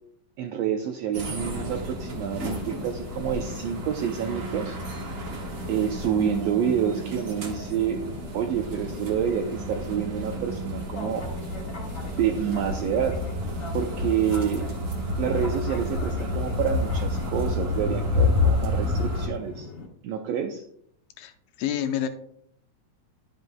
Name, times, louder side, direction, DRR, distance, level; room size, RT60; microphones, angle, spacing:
voice 1, 0.4-4.8 5.7-8.0 8.3-11.3 12.2-13.2 13.7-14.7 15.2-19.7 20.0-20.6, right 8 dB, 80° right, 5 dB, 1.5 m, -28 dB
sound 1, 1.0-19.9, left 2 dB, 40° left, 2.0 m, -41 dB
sound 2, 1.1-19.3, left 2 dB, 65° right, 0.8 m, -30 dB
voice 2, 21.6-22.1, left 10 dB, 80° left, 8 dB, 2.1 m, -27 dB
12.0 x 7.9 x 2.2 m, 0.69 s
omnidirectional pair, 3.6 m